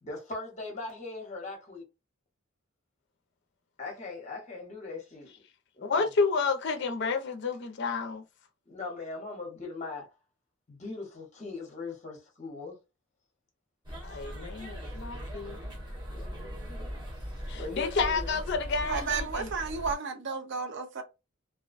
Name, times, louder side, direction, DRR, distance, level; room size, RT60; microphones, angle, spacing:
voice 1, 0.0-1.8 3.8-5.3 5.7-6.1 8.7-10.1 10.7-12.8 16.1-16.9 17.6-18.4, left 3 dB, 35° left, 0.8 m, -40 dB
voice 2, 5.8-8.2 14.0-15.6 17.5-19.5, left 4 dB, 50° left, 0.4 m, -30 dB
sound 1, 13.8-19.9, equal, 20° right, 1.0 m, -39 dB
voice 3, 18.9-21.0, right 5 dB, 55° right, 0.4 m, -33 dB
2.4 x 2.1 x 2.4 m
head